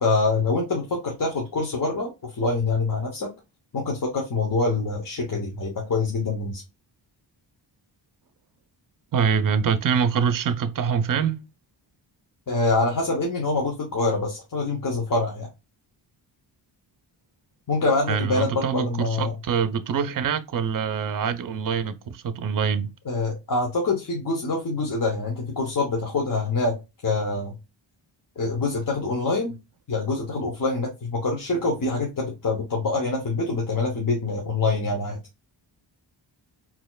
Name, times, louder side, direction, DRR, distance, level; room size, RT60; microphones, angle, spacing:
voice 1, 0.0-3.3 3.7-6.6 12.5-15.5 17.7-19.3 23.0-26.8 27.0-27.5 28.4-29.6 29.9-35.2, left 3 dB, 45° left, 1.0 m, -25 dB
voice 2, 9.1-11.4 18.1-22.9, right 6 dB, 45° right, 0.5 m, -25 dB
4.1 x 2.9 x 2.3 m
wide cardioid pair, 110°, 47 cm